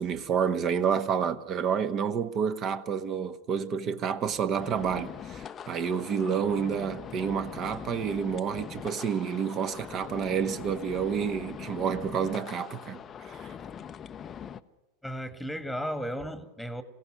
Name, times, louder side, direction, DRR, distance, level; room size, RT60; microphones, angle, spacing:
voice 1, 0.0-13.0 13.3-13.5, right 7 dB, 30° right, 1.3 m, -29 dB
sound 1, 4.6-14.6, left 8 dB, 25° left, 0.7 m, -42 dB
voice 2, 15.0-16.8, equal, ahead, 1.8 m, -34 dB
27.0 x 17.0 x 6.2 m
figure-of-eight pair, 90°, 0 cm